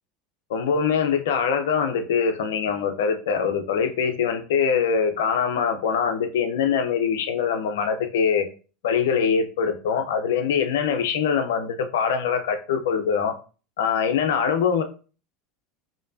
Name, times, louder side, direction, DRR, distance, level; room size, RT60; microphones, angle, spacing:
voice 1, 0.5-8.5 8.8-13.4 13.8-14.8, left 6 dB, 80° left, 7 dB, 0.6 m, -23 dB
5.1 x 2.8 x 2.6 m, 0.36 s
hypercardioid pair, 90°, 0 cm